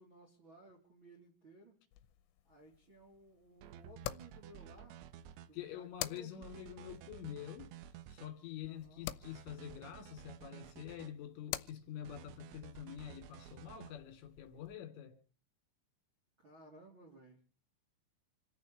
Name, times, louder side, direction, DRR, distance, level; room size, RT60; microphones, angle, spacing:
voice 1, 0.0-1.7 2.4-5.0 5.5-6.4 8.6-9.1 16.4-17.4, right 2 dB, 30° right, 3.4 m, -59 dB
sound 1, 1.9-14.8, left 15 dB, 90° left, 3.6 m, -50 dB
sound 2, 3.6-5.5 6.4-8.3 9.2-11.1 12.0-13.9, right 9 dB, 75° right, 3.1 m, -53 dB
voice 2, 5.5-7.7 8.1-15.2, left 10 dB, 70° left, 5.3 m, -47 dB
27.5 x 15.5 x 3.2 m
omnidirectional pair, 5.8 m